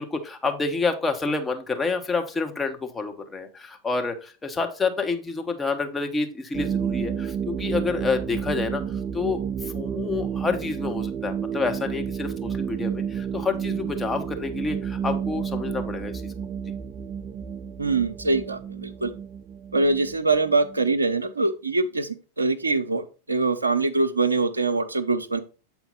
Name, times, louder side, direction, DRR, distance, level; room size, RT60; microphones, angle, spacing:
voice 1, 0.0-8.8 9.1-16.1, left 4 dB, 15° left, 4 dB, 1.0 m, -28 dB
sound 1, 6.5-20.9, right 8 dB, 25° right, 0.4 m, -31 dB
voice 2, 17.8-19.1 19.7-25.4, right 3 dB, 75° right, 11 dB, 0.6 m, -24 dB
7.9 x 4.4 x 4.0 m, 0.34 s
figure-of-eight pair, 90°, 0 cm